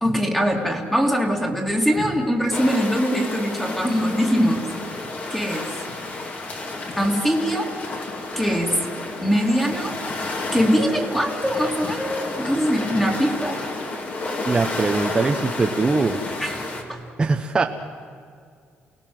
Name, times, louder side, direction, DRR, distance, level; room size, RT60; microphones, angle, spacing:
voice 1, 0.0-4.7 5.3-5.8 6.9-7.7 8.4-8.8 9.2-10.0 10.5-13.6 16.4-17.0, equal, 5° left, 1 dB, 2.4 m, -22 dB
sound 1, 2.5-16.8, left 2 dB, 40° left, 2.8 m, -31 dB
voice 2, 14.4-16.2 17.2-17.6, right 3 dB, 20° right, 3 dB, 1.0 m, -21 dB
28.5 x 19.0 x 7.8 m, 2.2 s
cardioid pair, 150°, 4 cm